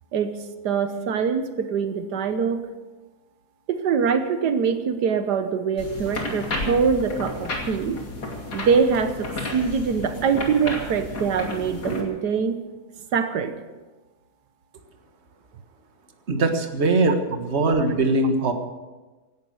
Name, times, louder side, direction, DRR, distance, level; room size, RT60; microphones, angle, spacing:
voice 1, 0.6-2.6 3.7-8.0 8.5-12.6 13.1-13.5, right 6 dB, 90° right, 9 dB, 1.6 m, -23 dB
sound 1, 5.8-12.0, left 2 dB, 75° left, 3.3 m, -32 dB
voice 2, 16.3-18.5, right 2 dB, 45° right, 5 dB, 1.8 m, -21 dB
17.0 x 12.0 x 6.5 m, 1.2 s
omnidirectional pair, 1.7 m